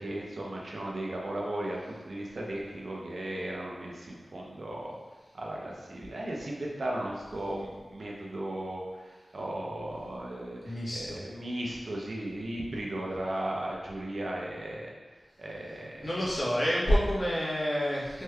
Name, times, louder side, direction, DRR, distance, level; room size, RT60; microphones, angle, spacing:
voice 1, 0.0-5.0 5.3-14.9 15.4-16.1, right 1 dB, 70° right, -2 dB, 0.6 m, -36 dB
voice 2, 10.6-11.2 16.0-18.2, equal, 40° left, -8 dB, 1.1 m, -28 dB
3.2 x 3.2 x 2.2 m, 1.3 s
wide cardioid pair, 60°, 0 cm